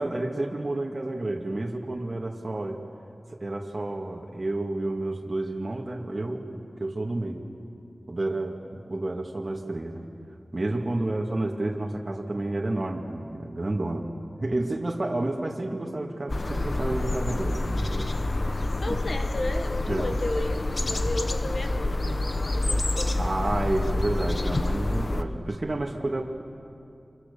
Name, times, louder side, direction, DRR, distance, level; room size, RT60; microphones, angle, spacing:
voice 1, 0.0-2.9 3.4-7.5 8.1-10.1 10.5-14.1 14.4-18.2 18.9-19.0 19.9-20.1 23.2-26.2, right 2 dB, 45° right, 0 dB, 2.2 m, -30 dB
sound 1, 16.3-25.2, left 2 dB, 50° left, 1.1 m, -27 dB
voice 2, 18.8-20.6 20.9-23.2, left 2 dB, 70° left, 5 dB, 1.6 m, -33 dB
30.0 x 26.0 x 7.0 m, 2.6 s
wide cardioid pair, 75°, 0 cm